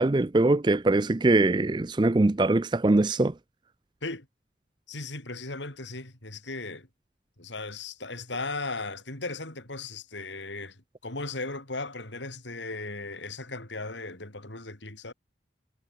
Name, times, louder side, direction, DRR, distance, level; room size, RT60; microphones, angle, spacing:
voice 1, 0.0-3.3, right 2 dB, 25° right, 0.4 m, -22 dB
voice 2, 4.9-6.9 7.4-15.1, left 3 dB, 80° left, 4.9 m, -37 dB
head